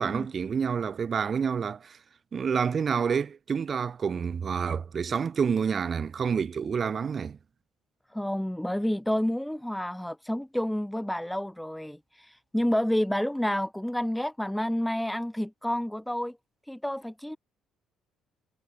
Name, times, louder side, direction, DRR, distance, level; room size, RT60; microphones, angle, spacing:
voice 1, 0.0-2.0 2.3-7.4, right 6 dB, 40° right, 4.0 m, -28 dB
voice 2, 8.1-12.0 12.5-16.4 16.7-17.4, equal, 5° left, 5.7 m, -29 dB
cardioid pair, 95°, 0 cm